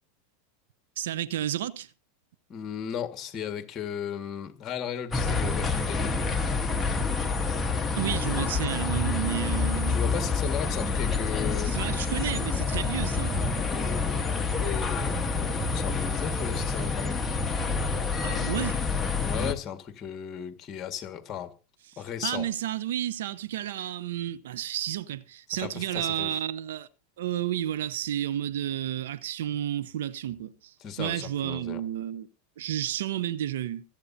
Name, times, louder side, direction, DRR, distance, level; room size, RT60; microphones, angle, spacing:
voice 1, 1.0-1.9 8.0-10.0 11.6-13.4 18.2-18.8 22.2-26.9 27.2-32.3 32.6-33.8, right 11 dB, 80° right, 0.8 m, -31 dB
voice 2, 2.5-6.2 9.9-12.0 14.6-17.2 19.2-21.5 22.0-22.5 25.5-26.4 30.8-31.8, left 9 dB, 35° left, 1.9 m, -36 dB
sound 1, 5.1-19.5, left 4 dB, 15° left, 1.4 m, -28 dB
25.0 x 8.5 x 2.8 m
hypercardioid pair, 115°, 0 cm